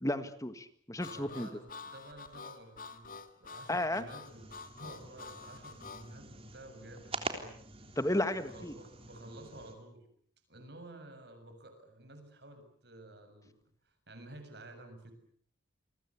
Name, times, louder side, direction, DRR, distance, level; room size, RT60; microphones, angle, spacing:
voice 1, 0.0-1.5 3.7-4.0 8.0-8.7, left 1 dB, 15° left, 11 dB, 1.8 m, -33 dB
Harmonica, 1.0-6.1, left 4 dB, 45° left, 2.2 m, -48 dB
voice 2, 1.0-4.5 4.8-7.6 8.3-10.1 10.5-13.5 13.8-15.1, right 1 dB, 55° right, 8 dB, 7.1 m, -51 dB
sound 1, 4.2-9.7, right 3 dB, 30° right, 3.6 m, -45 dB
29.0 x 22.5 x 8.5 m, 0.62 s
head